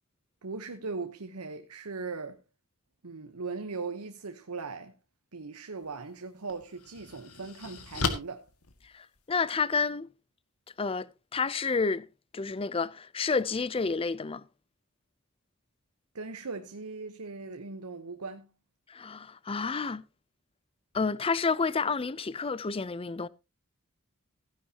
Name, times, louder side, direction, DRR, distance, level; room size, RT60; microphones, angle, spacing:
voice 1, 0.4-2.4 3.0-4.9 5.3-8.5 16.1-18.5, right 4 dB, 90° right, 1.0 m, -39 dB
sound 1, 5.8-5.9 6.5-9.5, left 4 dB, 85° left, 1.8 m, -36 dB
voice 2, 8.9-10.1 10.8-12.1 12.3-14.4 18.9-20.0 20.9-23.3, left 4 dB, 25° left, 0.5 m, -30 dB
16.0 x 10.0 x 2.8 m
head